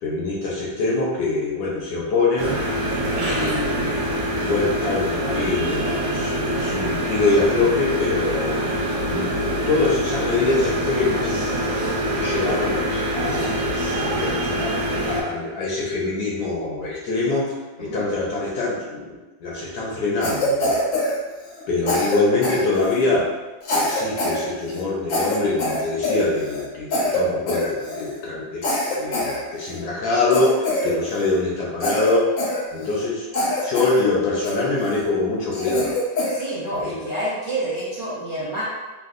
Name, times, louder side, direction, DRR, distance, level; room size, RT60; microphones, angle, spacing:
voice 1, 0.0-2.6 3.2-4.0 4.4-8.6 9.0-11.3 12.1-12.8 13.1-13.7 14.0-14.7 15.0-19.2 19.4-20.9 21.7-23.3 23.7-32.3 32.7-35.9 36.7-37.0, left 3 dB, 70° left, -4 dB, 1.1 m, -24 dB
sound 1, 2.4-15.2, right 1 dB, 80° right, 1.3 m, -24 dB
Cough, 20.2-21.6 21.9-23.1 23.6-24.4 24.7-24.8 25.1-26.6 26.9-27.2 27.5-28.1 28.6-29.8 30.3-31.4 31.8-33.0 33.3-34.0 34.4-35.0 35.5-36.4, left 1 dB, 90° left, 1.5 m, -24 dB
voice 2, 36.3-38.6, right 1 dB, 55° right, -11 dB, 0.7 m, -28 dB
3.5 x 2.2 x 2.4 m, 1.2 s
omnidirectional pair, 2.0 m